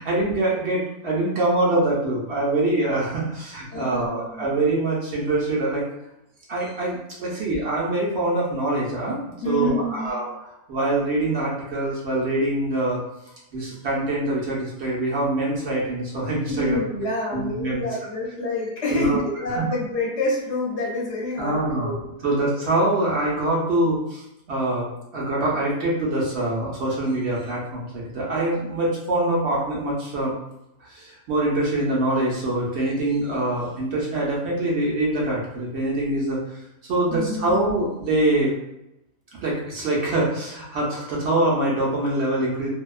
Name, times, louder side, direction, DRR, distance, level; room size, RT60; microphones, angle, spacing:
voice 1, 0.0-5.8 6.5-13.0 13.5-16.8 17.3-17.8 18.9-19.2 19.5-19.7 21.4-24.2 24.5-24.9 25.1-30.3 30.8-36.4 36.9-38.5 39.4-42.7, right 1 dB, 60° right, -5 dB, 0.8 m, -24 dB
voice 2, 3.7-4.5 9.4-10.1 16.5-21.9 37.1-37.7, left 1 dB, 65° left, -3 dB, 0.9 m, -27 dB
2.7 x 2.2 x 2.3 m, 0.85 s
omnidirectional pair, 1.4 m